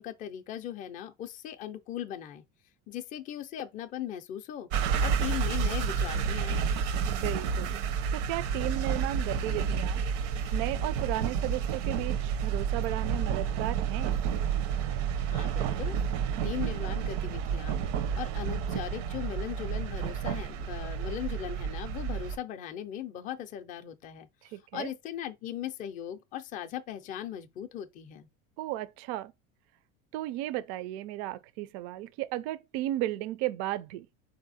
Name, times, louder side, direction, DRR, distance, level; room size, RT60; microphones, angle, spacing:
voice 1, 0.0-2.4 2.9-4.7 5.0-6.6 15.2-15.9 16.4-17.8 18.1-24.3 24.7-28.3, left 11 dB, 25° left, 0.4 m, -38 dB
sound 1, 4.7-22.4, right 7 dB, 85° right, 0.8 m, -30 dB
voice 2, 7.0-7.8 8.1-10.0 10.5-14.2 24.5-24.9 28.6-29.3 30.1-34.1, right 15 dB, 65° right, 0.5 m, -34 dB
4.2 x 2.7 x 4.1 m
cardioid pair, 160°, 34 cm